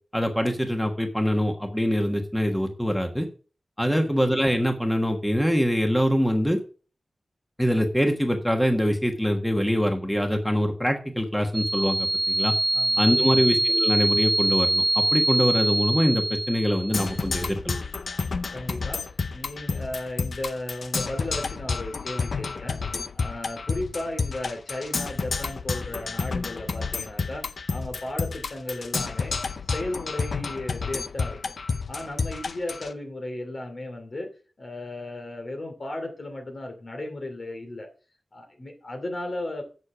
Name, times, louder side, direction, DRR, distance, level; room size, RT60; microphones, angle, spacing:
voice 1, 0.1-3.3 3.8-6.6 7.6-12.5 13.0-17.8, equal, 5° left, 3 dB, 1.4 m, -24 dB
voice 2, 3.8-4.2 12.7-13.4 18.5-19.0 19.3-22.8 23.1-29.4 29.7-31.5 31.9-34.3 34.6-37.9 38.3-39.6, left 1 dB, 55° left, 5 dB, 2.7 m, -35 dB
sound 1, 11.5-17.2, right 2 dB, 40° right, 0.7 m, -24 dB
Percussion, 16.9-32.9, left 4 dB, 75° left, 0.6 m, -30 dB
9.7 x 6.6 x 4.9 m, 0.38 s
wide cardioid pair, 70°, 0 cm